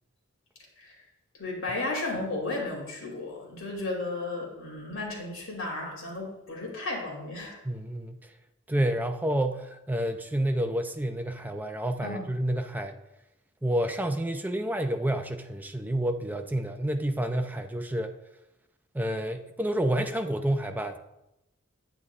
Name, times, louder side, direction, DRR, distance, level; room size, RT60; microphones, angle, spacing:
voice 1, 1.4-7.6 12.0-12.3, left 2 dB, 70° left, -1 dB, 2.7 m, -34 dB
voice 2, 7.6-8.3 8.7-12.9 13.6-18.1 18.9-21.0, right 1 dB, 10° right, 6 dB, 0.4 m, -29 dB
9.5 x 9.4 x 2.4 m, 0.90 s
head